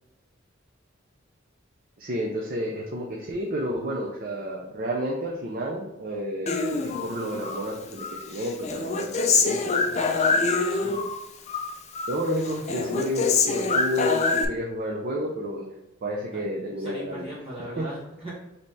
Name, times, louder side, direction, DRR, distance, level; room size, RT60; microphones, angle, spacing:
voice 1, 2.0-10.0 12.1-15.7 16.0-17.2 17.8-17.9, equal, 45° right, 0 dB, 0.5 m, -31 dB
Human voice, 6.5-7.6 8.0-11.2 11.5-12.2 12.5-14.4, left 4 dB, 35° left, 0.5 m, -25 dB
voice 2, 16.8-18.3, right 1 dB, 30° right, -6 dB, 1.0 m, -38 dB
5.2 x 2.9 x 3.2 m, 0.97 s
head